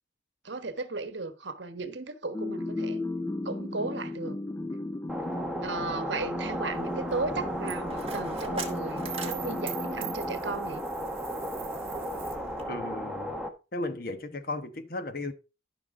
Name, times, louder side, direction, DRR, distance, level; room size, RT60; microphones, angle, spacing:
voice 1, 0.4-3.0 3.4-4.4 5.6-10.8, right 3 dB, 75° right, 1.2 m, -35 dB
sound 1, 2.3-11.1, left 2 dB, 15° left, 0.4 m, -36 dB
sound 2, 5.1-13.5, equal, 5° right, 1.1 m, -35 dB
Coin (dropping), 6.5-12.6, right 6 dB, 30° right, 1.7 m, -42 dB
voice 2, 12.7-13.3 13.7-15.3, left 2 dB, 50° left, 1.2 m, -35 dB
13.5 x 6.0 x 3.7 m
head